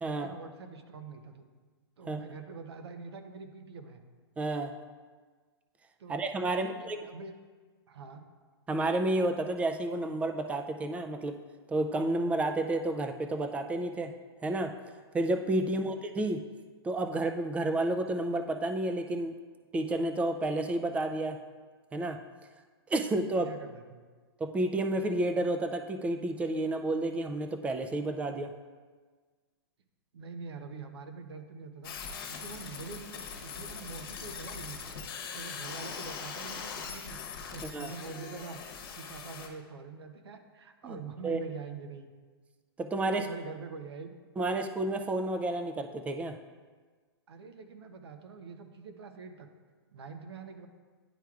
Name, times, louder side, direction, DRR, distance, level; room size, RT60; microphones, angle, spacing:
voice 1, 0.0-1.5 2.0-4.0 6.0-6.2 6.5-7.3 7.9-8.2 15.6-15.9 23.3-24.1 30.1-31.9 32.3-35.0 35.3-37.2 37.5-38.6 39.0-42.1 43.1-44.2 47.3-49.5 49.9-50.7, right 5 dB, 85° right, 7 dB, 0.7 m, -45 dB
voice 2, 4.4-4.8 6.1-7.0 8.7-11.4 11.7-14.1 14.4-14.7 15.1-16.4 16.8-19.3 19.7-21.4 21.9-22.2 22.9-23.5 24.4-28.5 37.7-37.9 40.8-41.0 41.2-41.4 42.8-43.3 44.4-46.4, right 2 dB, 10° right, 7 dB, 0.3 m, -30 dB
sound 1, 31.8-39.5, left 6 dB, 60° left, 1.0 m, -41 dB
10.0 x 4.5 x 2.4 m, 1.4 s
hypercardioid pair, 135°, 13 cm